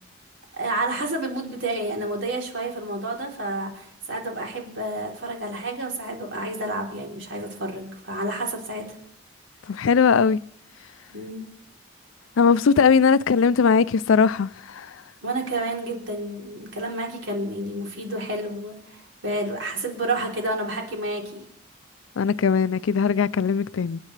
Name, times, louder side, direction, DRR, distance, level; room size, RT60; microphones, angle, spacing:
voice 1, 0.5-8.9 11.1-11.5 15.2-21.4, right 2 dB, 70° right, 3.5 m, -30 dB
voice 2, 9.7-10.4 12.4-14.9 22.2-24.0, left 5 dB, 90° left, 0.4 m, -19 dB
27.0 x 9.5 x 3.3 m
head